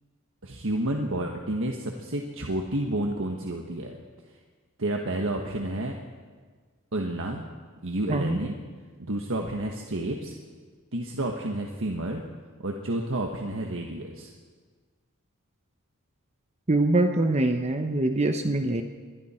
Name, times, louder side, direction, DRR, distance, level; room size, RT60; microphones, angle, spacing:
voice 1, 0.4-4.0 4.8-6.0 6.9-7.4 7.8-8.6 9.0-10.3 10.9-12.2 12.6-14.3, right 1 dB, 65° right, 2 dB, 1.5 m, -30 dB
voice 2, 16.7-18.8, right 2 dB, 30° right, 6 dB, 0.9 m, -24 dB
27.5 x 22.5 x 4.5 m, 1.5 s
head